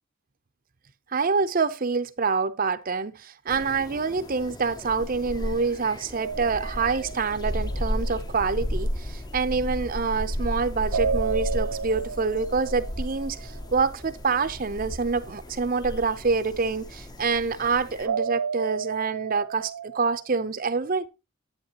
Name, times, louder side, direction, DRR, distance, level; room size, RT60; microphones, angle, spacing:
voice 1, 1.1-21.1, right 4 dB, 40° right, 0.6 m, -26 dB
sound 1, 3.5-18.1, equal, 20° left, 0.6 m, -34 dB
sound 2, 6.1-8.2 10.9-13.8 18.0-20.3, right 6 dB, 90° right, 0.5 m, -32 dB
10.5 x 9.1 x 2.9 m
head